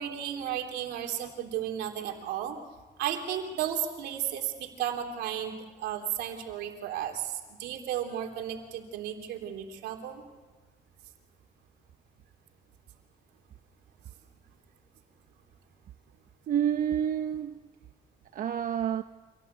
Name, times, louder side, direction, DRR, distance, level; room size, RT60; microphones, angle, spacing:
voice 1, 0.0-2.6 3.0-10.2, right 10 dB, 85° right, 3.4 m, -34 dB
voice 2, 16.5-17.6 18.3-19.0, right 9 dB, 55° right, 0.9 m, -28 dB
26.5 x 18.0 x 8.3 m
cardioid pair, 110°, 17 cm